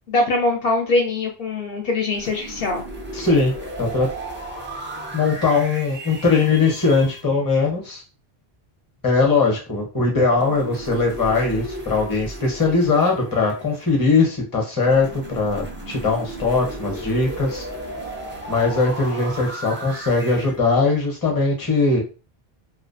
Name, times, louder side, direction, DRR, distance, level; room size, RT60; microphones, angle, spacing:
voice 1, 0.1-2.8, left 2 dB, 70° left, 1 dB, 0.7 m, -22 dB
sound 1, 2.1-7.2 10.3-14.1 14.8-20.6, right 1 dB, 15° right, 0.4 m, -35 dB
voice 2, 3.1-4.1 5.1-8.0 9.0-17.6 18.5-22.0, left 3 dB, 20° left, 0 dB, 0.7 m, -20 dB
2.5 x 2.0 x 2.6 m, 0.33 s
omnidirectional pair, 1.1 m